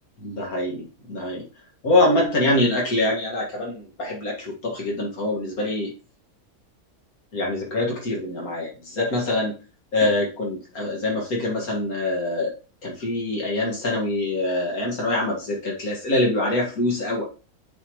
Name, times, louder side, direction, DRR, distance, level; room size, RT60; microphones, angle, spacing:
voice 1, 0.2-1.5 1.8-5.9 7.3-9.5 9.9-12.5 12.8-17.2, left 2 dB, 80° left, -1 dB, 2.4 m, -24 dB
7.8 x 4.6 x 3.1 m, 0.33 s
omnidirectional pair, 1.5 m